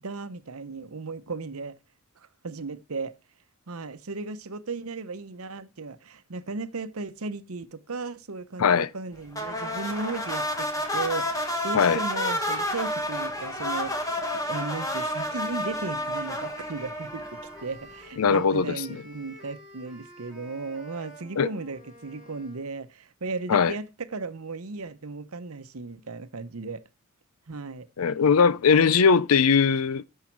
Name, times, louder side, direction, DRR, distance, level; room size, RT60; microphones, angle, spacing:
voice 1, 0.0-1.7 2.2-3.1 3.7-17.2 17.6-23.8 24.1-26.8 27.5-27.9 29.0-29.1, right 3 dB, 80° right, 0.9 m, -36 dB
sound 1, 9.3-17.8, left 1 dB, 15° left, 1.8 m, -30 dB
sound 2, 15.2-22.7, equal, 5° right, 3.7 m, -48 dB
voice 2, 18.2-18.7 21.4-21.5 23.5-23.7 28.0-30.0, left 6 dB, 80° left, 0.5 m, -20 dB
13.0 x 5.6 x 4.6 m
head